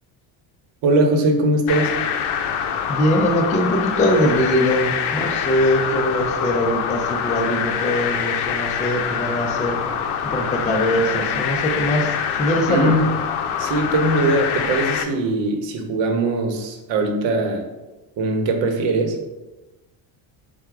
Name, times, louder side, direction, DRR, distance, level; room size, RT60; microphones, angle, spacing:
voice 1, 0.8-1.9 12.7-13.1 13.6-17.6 18.2-19.3, right 2 dB, 65° right, 4 dB, 0.9 m, -20 dB
sound 1, 1.7-15.0, left 7 dB, 80° left, 0.6 m, -25 dB
voice 2, 2.9-9.8 10.2-12.9, equal, 15° left, 2 dB, 0.3 m, -21 dB
4.7 x 2.3 x 4.5 m, 1.1 s
cardioid pair, 125°, 49 cm